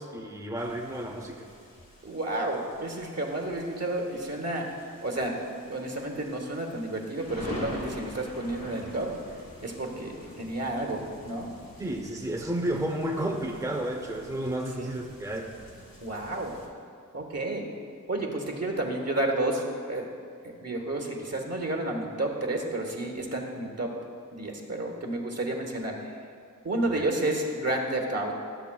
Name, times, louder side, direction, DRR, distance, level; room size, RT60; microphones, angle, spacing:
voice 1, 0.0-1.5 11.8-15.5 26.9-27.1, right 1 dB, 10° right, -1 dB, 0.7 m, -32 dB
sound 1, 0.6-16.7, left 1 dB, 90° left, 1.4 m, -46 dB
voice 2, 2.0-4.7 5.0-5.4 5.6-9.2 9.6-11.5 14.8-14.9 16.0-16.6 17.1-17.7 18.1-20.1 20.4-23.9 24.3-26.2 26.6-28.3, right 2 dB, 50° right, 2 dB, 1.0 m, -31 dB
12.5 x 6.7 x 2.3 m, 2.3 s
wide cardioid pair, 50°, 33 cm